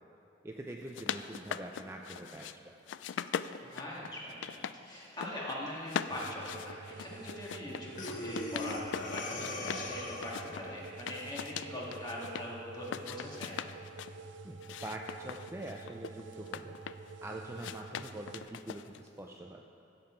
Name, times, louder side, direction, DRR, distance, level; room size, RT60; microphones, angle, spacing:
voice 1, 0.4-2.7 14.4-16.7 17.2-19.6, right 1 dB, 15° right, 1 dB, 0.4 m, -44 dB
sound 1, 0.7-2.5 2.9-4.8 5.0-5.6 5.9-9.9 10.2-12.4 12.8-14.1 14.6-17.1 17.6-19.1, left 8 dB, 70° left, 0.3 m, -41 dB
voice 2, 3.6-13.6, left 1 dB, 20° left, -5 dB, 2.0 m, -42 dB
sound 2, 6.1-18.4, right 4 dB, 75° right, 0.5 m, -49 dB
Breathing, 8.0-10.5, left 2 dB, 45° left, 0.9 m, -40 dB
15.5 x 6.9 x 4.5 m, 2.8 s
head